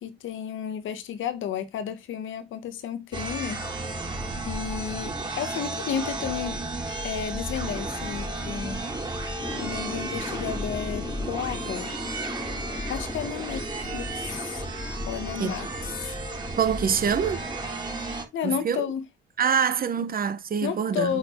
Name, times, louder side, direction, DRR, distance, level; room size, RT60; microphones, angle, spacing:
voice 1, 0.0-3.6 4.4-6.6 7.0-8.8 9.6-11.9 12.9-14.7 15.0-16.2 18.0-19.0 20.0-20.1 20.6-21.2, left 8 dB, 75° left, 1.6 m, -32 dB
sound 1, 3.1-18.2, right 2 dB, 20° right, 2.8 m, -33 dB
sound 2, 9.4-16.8, left 4 dB, 20° left, 0.6 m, -40 dB
voice 2, 16.6-17.4 18.4-18.9 19.4-21.2, right 7 dB, 45° right, 1.3 m, -25 dB
8.5 x 4.4 x 4.7 m
cardioid pair, 90°, 20 cm